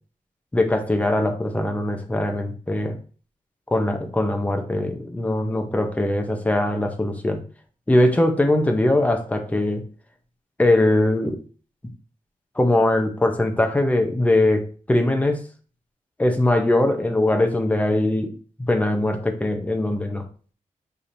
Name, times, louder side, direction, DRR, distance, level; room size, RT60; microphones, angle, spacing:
voice 1, 0.5-3.0 3.7-7.4 7.9-9.8 10.6-11.4 12.6-15.4 16.2-18.3 18.6-20.2, left 1 dB, 10° left, 5 dB, 0.6 m, -21 dB
6.7 x 2.9 x 2.6 m, 0.38 s
wide cardioid pair, 165°, 14 cm